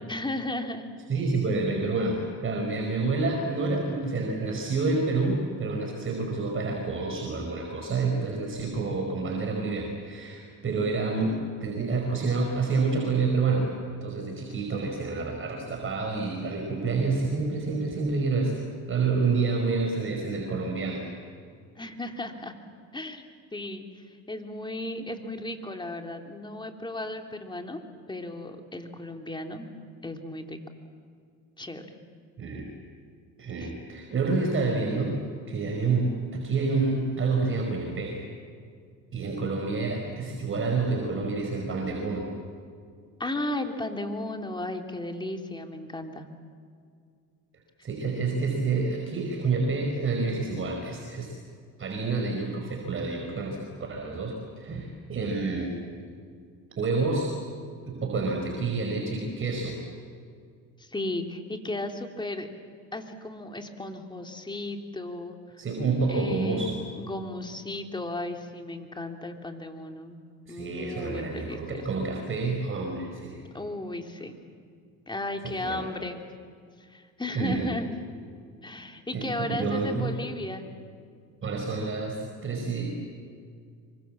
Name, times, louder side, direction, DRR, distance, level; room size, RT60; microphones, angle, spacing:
voice 1, 0.1-0.8 21.8-22.5 22.9-23.2 23.5-27.8 28.1-29.7 30.0-30.6 31.6-31.8 33.6-33.7 43.2-46.3 60.8-62.5 62.9-65.4 66.1-70.2 70.5-71.8 73.5-74.4 75.1-76.2 76.8-77.9 78.6-80.7, left 2 dB, 15° left, 4 dB, 3.2 m, -35 dB
voice 2, 1.1-18.6 18.9-21.0 32.4-32.7 33.4-35.2 35.5-38.2 39.1-42.3 47.8-51.3 51.8-53.6 53.9-55.8 56.8-57.3 57.8-59.8 65.6-66.8 70.5-73.4 75.4-75.9 77.3-77.7 79.1-80.1 81.4-83.0, right 3 dB, 35° right, 1 dB, 5.0 m, -28 dB
27.0 x 24.5 x 7.6 m, 2.2 s
supercardioid pair, 95°, 34 cm